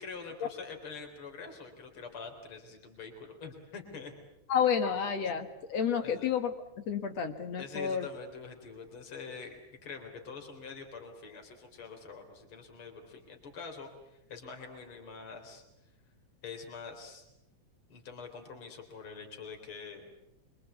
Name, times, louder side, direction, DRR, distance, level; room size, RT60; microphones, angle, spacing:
voice 1, 0.0-4.1 6.0-6.3 7.6-15.6 16.4-17.3 17.9-20.1, left 5 dB, 45° left, 4 dB, 4.5 m, -45 dB
voice 2, 4.5-6.5 6.9-8.1, left 7 dB, 60° left, 8 dB, 2.6 m, -30 dB
26.0 x 24.5 x 8.3 m, 0.86 s
omnidirectional pair, 3.5 m